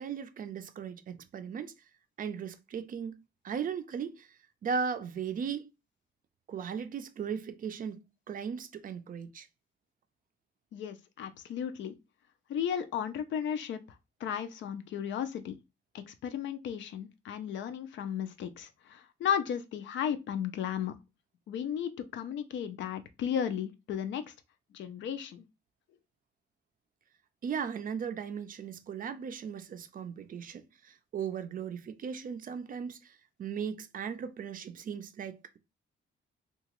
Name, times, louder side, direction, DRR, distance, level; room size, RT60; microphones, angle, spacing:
voice 1, 0.0-1.7 2.2-3.2 3.4-5.7 6.5-8.0 8.3-9.5 27.4-35.6, right 6 dB, 45° right, 0.4 m, -37 dB
voice 2, 10.7-11.9 12.5-13.8 14.2-15.6 15.9-20.9 21.5-24.2 24.7-25.5, left 8 dB, 75° left, 0.4 m, -34 dB
2.8 x 2.3 x 2.9 m
cardioid pair, 125°, 19 cm